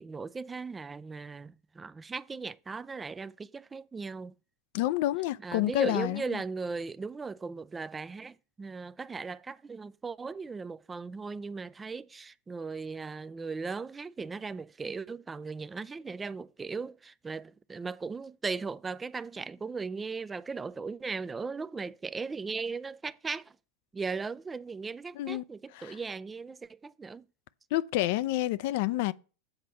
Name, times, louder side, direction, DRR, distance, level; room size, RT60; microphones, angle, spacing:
voice 1, 0.0-4.3 5.4-23.5 23.9-27.2, right 4 dB, 15° right, 0.3 m, -38 dB
voice 2, 4.7-6.4 25.1-25.4 25.7-26.0 27.7-29.1, left 15 dB, 60° left, 0.4 m, -29 dB
7.9 x 4.1 x 6.8 m
hypercardioid pair, 110°, 0 cm